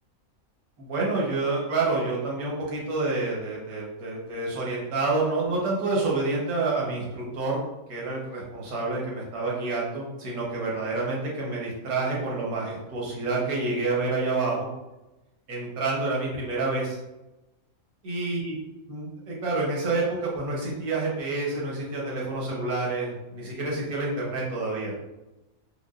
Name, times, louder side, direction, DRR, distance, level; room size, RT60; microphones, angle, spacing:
voice 1, 0.8-7.6 7.9-14.7 15.5-17.0 18.0-18.5 18.9-24.9, right 3 dB, 80° right, -3 dB, 1.5 m, -28 dB
5.2 x 2.2 x 2.4 m, 0.98 s
omnidirectional pair, 1.5 m